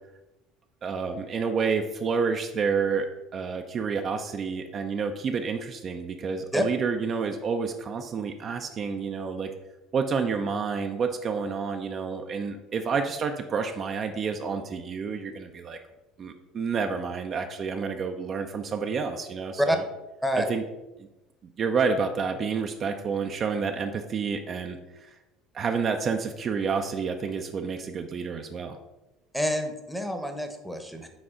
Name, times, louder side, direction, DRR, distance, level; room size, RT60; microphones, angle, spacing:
voice 1, 0.8-9.5 9.9-15.8 16.2-19.8 20.3-20.6 21.6-25.2 25.5-28.8, right 5 dB, 45° right, 5 dB, 0.5 m, -29 dB
voice 2, 29.3-31.1, equal, ahead, 6 dB, 0.9 m, -27 dB
6.2 x 4.2 x 3.7 m, 1.0 s
hypercardioid pair, 65°, 0 cm